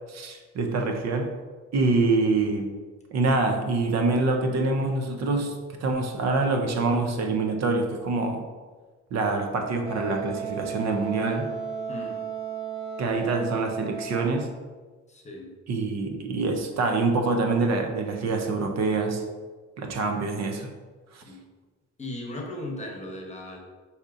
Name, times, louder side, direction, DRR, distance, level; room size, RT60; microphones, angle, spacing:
voice 1, 0.1-1.3 1.7-2.7 3.1-8.4 9.1-11.5 13.0-14.5 15.7-19.2 19.8-20.7 21.1-21.2, right 3 dB, 60° right, 4 dB, 0.6 m, -25 dB
Wind instrument woodwind instrument, 9.9-14.5, right 6 dB, 20° right, 1.1 m, -34 dB
voice 2, 11.9-12.2 15.1-15.5 21.3-21.4 22.0-23.6, left 1 dB, 25° left, 0 dB, 0.9 m, -37 dB
5.9 x 2.8 x 2.5 m, 1.4 s
cardioid pair, 90°, 30 cm